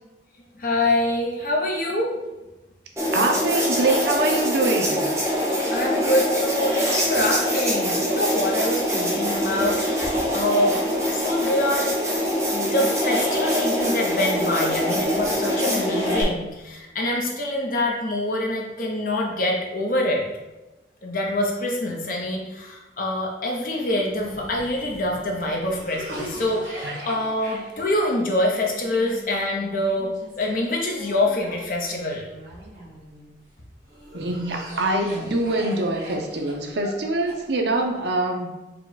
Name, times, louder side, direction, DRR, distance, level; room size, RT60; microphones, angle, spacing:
voice 1, 0.5-2.1 5.7-10.8 11.1-11.9 12.5-20.2 21.0-32.2, left 1 dB, 50° left, -1 dB, 0.8 m, -25 dB
sound 1, 3.0-16.2, equal, 15° right, 0.8 m, -24 dB
voice 2, 3.1-5.1 26.1-26.2 26.8-27.2 34.1-38.5, right 2 dB, 70° right, 2 dB, 0.6 m, -24 dB
Cough, 24.1-33.3 33.9-37.8, equal, 50° right, 1.5 m, -40 dB
4.8 x 2.3 x 4.0 m, 1.1 s
head